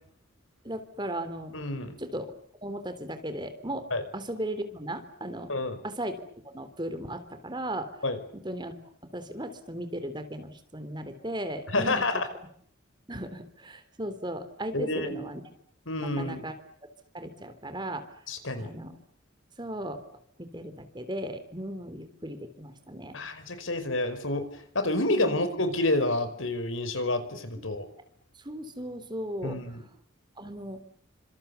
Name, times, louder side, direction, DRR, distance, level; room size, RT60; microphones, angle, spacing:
voice 1, 0.6-1.5 2.0-2.3 2.6-5.5 5.8-7.9 8.4-8.7 9.1-12.0 13.1-15.4 16.0-16.5 17.1-18.0 18.6-19.0 19.6-20.0 20.4-23.2 25.1-25.4 27.6-27.7 28.4-29.8 30.4-30.8, right 1 dB, 25° right, 9 dB, 3.3 m, -36 dB
voice 2, 1.5-1.9 3.9-4.0 5.5-5.8 8.0-8.2 11.7-12.3 14.7-15.2 15.9-16.4 18.3-18.7 23.1-24.5 24.7-27.8 29.4-29.8, left 2 dB, 90° left, 11 dB, 5.0 m, -28 dB
29.0 x 26.0 x 7.0 m, 0.63 s
head